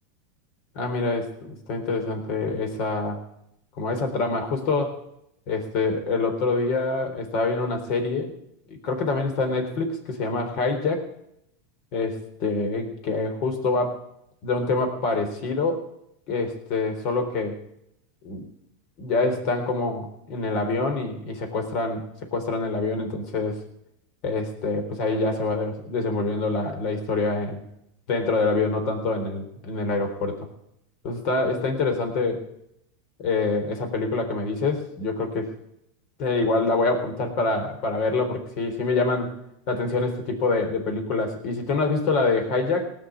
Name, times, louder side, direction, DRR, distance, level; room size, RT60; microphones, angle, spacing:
voice 1, 0.7-3.2 3.8-5.0 5.5-8.3 8.7-11.1 11.9-14.0 14.4-15.9 16.3-17.6 18.2-18.4 19.0-23.6 24.2-27.6 28.1-30.5 31.0-32.5 33.2-35.5 36.2-39.4 39.7-42.9, left 3 dB, 55° left, 5 dB, 3.7 m, -26 dB
18.0 x 6.4 x 8.3 m, 0.78 s
supercardioid pair, 125°, 0 cm